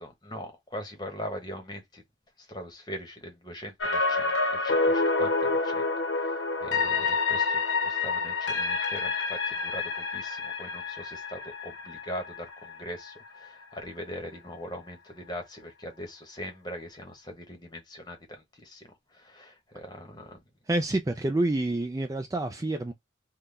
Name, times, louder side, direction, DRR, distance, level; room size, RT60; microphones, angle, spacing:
voice 1, 0.0-2.0 2.5-5.8 6.2-6.3 6.6-18.9 19.1-20.4, equal, 20° left, 1.0 m, -41 dB
sound 1, 3.8-13.8 14.2-14.3, left 3 dB, 70° left, 0.8 m, -28 dB
voice 2, 20.7-22.9, right 2 dB, 15° right, 0.3 m, -28 dB
3.8 x 2.2 x 3.2 m
head